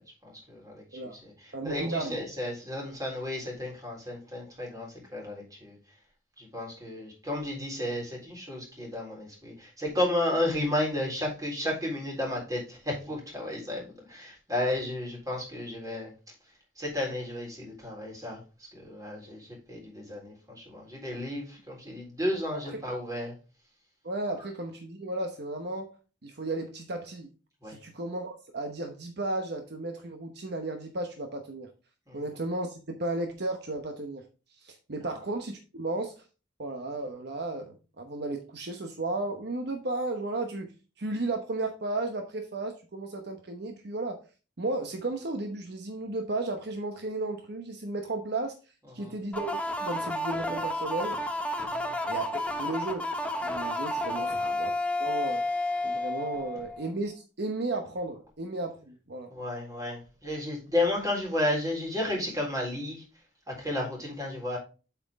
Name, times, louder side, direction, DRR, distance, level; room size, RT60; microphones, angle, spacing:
voice 1, 0.2-5.8 6.4-16.1 16.8-23.3 27.6-27.8 32.1-32.2 49.0-49.1 51.7-52.0 54.1-54.3 59.3-63.0 63.5-64.6, left 1 dB, 20° right, 3.9 m, -33 dB
voice 2, 1.5-2.2 22.5-22.6 24.0-27.3 27.7-31.7 32.1-34.2 34.6-36.2 36.6-44.2 44.6-48.5 48.9-51.2 52.1-52.3 52.6-53.1 53.4-54.7 55.0-55.4 55.8-59.3, right 2 dB, 60° right, 1.0 m, -34 dB
sound 1, 49.3-56.9, left 1 dB, 5° left, 0.9 m, -31 dB
8.1 x 5.8 x 3.5 m
head